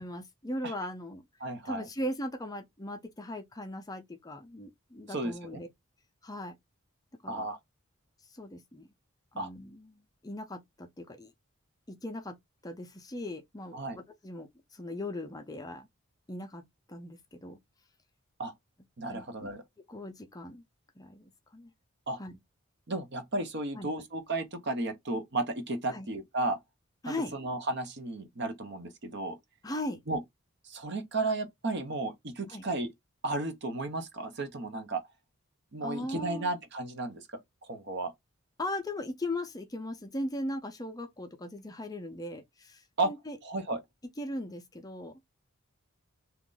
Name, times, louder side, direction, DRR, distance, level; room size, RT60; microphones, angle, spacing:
voice 1, 0.0-1.2 1.6-5.7 6.2-6.6 7.2-7.5 8.3-8.9 9.3-11.3 11.9-12.4 12.6-15.9 16.3-17.6 19.1-19.5 19.9-20.6 21.0-21.7 22.2-22.4 23.8-23.9 25.9-26.1 27.0-27.3 29.6-30.0 32.5-32.6 35.8-36.6 38.6-43.4 44.2-45.2, left 1 dB, 15° left, 0.5 m, -39 dB
voice 2, 1.4-1.8 5.1-5.6 7.3-7.6 9.4-9.5 13.7-14.0 18.4-18.5 19.0-19.6 22.1-22.2 22.9-26.6 27.3-29.4 30.1-30.2 30.6-32.9 33.2-35.0 35.7-37.2 37.7-38.1 43.0-43.1 43.4-43.8, right 2 dB, 55° right, 0.8 m, -33 dB
2.9 x 2.5 x 3.7 m
head